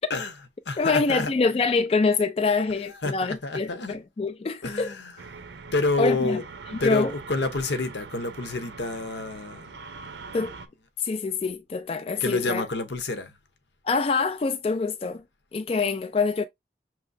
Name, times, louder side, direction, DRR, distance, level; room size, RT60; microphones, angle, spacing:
voice 1, 0.1-1.4 2.7-4.0 4.6-5.3 5.7-6.5 6.8-9.8 12.2-13.3, left 2 dB, 80° left, 0.8 m, -29 dB
voice 2, 0.8-4.9 6.0-6.4 6.8-7.1 10.3-10.5 11.0-12.6 13.8-15.2 15.5-16.4, left 4 dB, 35° left, 0.3 m, -25 dB
sound 1, 5.2-10.7, right 4 dB, 85° right, 0.7 m, -42 dB
5.9 x 3.1 x 2.6 m
head